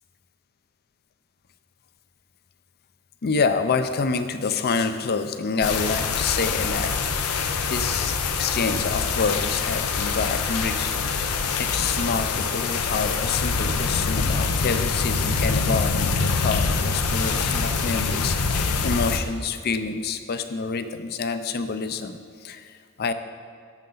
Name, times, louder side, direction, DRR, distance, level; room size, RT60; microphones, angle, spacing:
voice 1, 3.2-7.3 7.6-11.1 11.6-23.1, left 4 dB, 45° left, 10 dB, 0.5 m, -27 dB
sound 1, 5.6-19.2, left 4 dB, 85° left, 0.7 m, -25 dB
13.0 x 6.7 x 3.9 m, 2.1 s
head